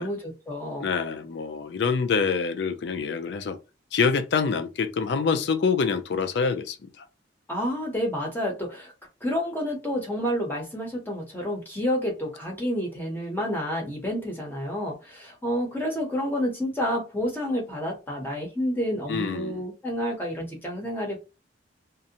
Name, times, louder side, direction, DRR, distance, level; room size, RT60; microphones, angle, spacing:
voice 1, 0.0-0.9 7.5-8.9 9.2-21.2, equal, 10° left, 0.6 m, -29 dB
voice 2, 0.8-3.6 3.9-7.0 19.1-19.6, left 5 dB, 60° left, 0.4 m, -26 dB
2.5 x 2.1 x 2.7 m
head